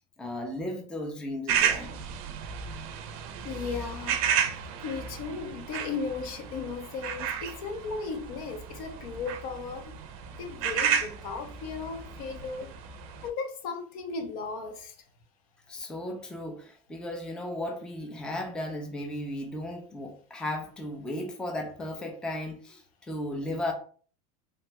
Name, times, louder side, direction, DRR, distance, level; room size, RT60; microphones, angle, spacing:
voice 1, 0.2-2.0 15.7-23.7, left 1 dB, 5° left, 0.4 m, -35 dB
sound 1, 1.5-13.3, right 8 dB, 65° right, 0.5 m, -33 dB
voice 2, 3.4-4.2 4.8-10.0 10.4-12.7 13.2-15.0, left 4 dB, 70° left, 0.7 m, -36 dB
3.2 x 2.2 x 2.9 m
supercardioid pair, 140°, 19 cm